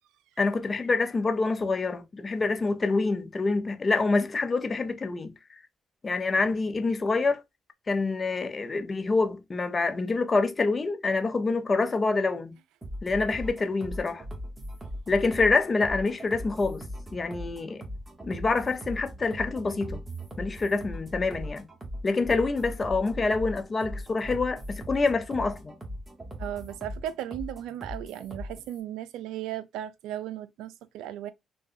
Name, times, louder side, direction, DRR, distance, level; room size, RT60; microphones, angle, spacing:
voice 1, 0.4-5.3 6.0-7.4 7.9-12.5 13.0-14.2 15.1-16.9 17.1-17.8 18.2-20.0 20.4-21.6 22.0-25.7, left 3 dB, 35° left, 0.6 m, -26 dB
sound 1, 12.8-28.8, equal, 20° right, 1.3 m, -39 dB
voice 2, 26.4-31.3, right 12 dB, 85° right, 0.3 m, -36 dB
3.5 x 2.3 x 2.6 m
supercardioid pair, 60°, 0 cm